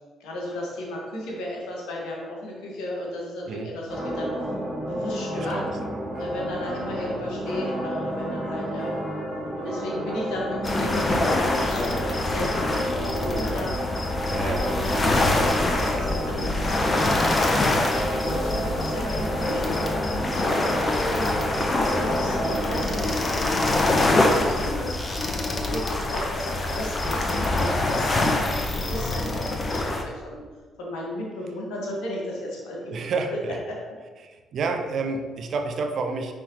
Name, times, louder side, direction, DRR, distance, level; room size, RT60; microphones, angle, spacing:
voice 1, 0.2-4.3 4.7-5.6 6.2-9.1 9.6-13.8 14.3-17.3 17.9-21.5 22.0-25.0 25.5-30.4 30.8-33.4 33.7-33.8, left 1 dB, 65° left, -2 dB, 1.5 m, -34 dB
sound 1, 3.9-23.2, equal, ahead, 1.6 m, -30 dB
voice 2, 5.4-6.3 14.3-15.8 16.2-16.3 17.5-17.8 32.9-33.6 34.2-36.3, right 4 dB, 50° right, 5 dB, 0.6 m, -31 dB
sound 2, 10.6-30.0, left 2 dB, 30° left, 0.8 m, -25 dB
9.5 x 3.6 x 3.0 m, 1.4 s
figure-of-eight pair, 45°, 0 cm